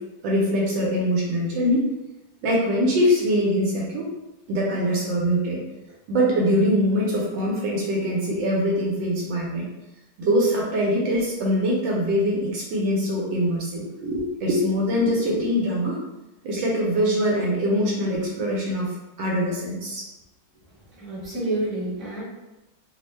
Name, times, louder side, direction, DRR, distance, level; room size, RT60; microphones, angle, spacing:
voice 1, 0.0-1.9 2.4-4.1 4.5-5.6 6.1-9.7 10.2-16.0 16.4-20.1, equal, 75° right, -3 dB, 1.2 m, -23 dB
voice 2, 20.9-22.2, right 2 dB, ahead, -10 dB, 0.7 m, -29 dB
3.4 x 2.0 x 3.1 m, 0.99 s
omnidirectional pair, 2.2 m